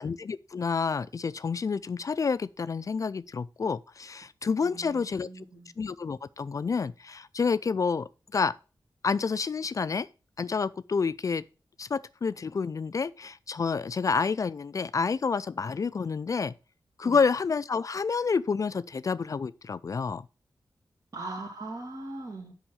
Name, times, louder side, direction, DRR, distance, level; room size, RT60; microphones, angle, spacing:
voice 1, 0.0-5.4 5.8-8.5 9.0-10.1 10.4-11.4 11.8-16.5 17.0-20.3, left 5 dB, 45° left, 0.3 m, -29 dB
voice 2, 4.6-5.7 17.0-17.2 21.1-22.5, right 2 dB, 50° right, 2.4 m, -40 dB
6.0 x 5.5 x 6.3 m
wide cardioid pair, 95°, 8 cm